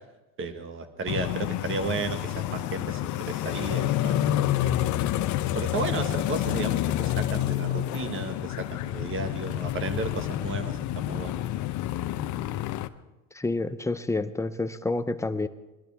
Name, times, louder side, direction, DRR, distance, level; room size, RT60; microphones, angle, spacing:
voice 1, 0.4-4.3 4.6-4.9 5.5-11.4, right 3 dB, 30° right, 8 dB, 1.5 m, -34 dB
sound 1, 1.1-12.9, left 13 dB, 50° left, 0.7 m, -28 dB
voice 2, 13.3-15.5, left 2 dB, 10° left, 11 dB, 0.5 m, -28 dB
22.0 x 12.0 x 3.5 m, 1.1 s
supercardioid pair, 105°, 39 cm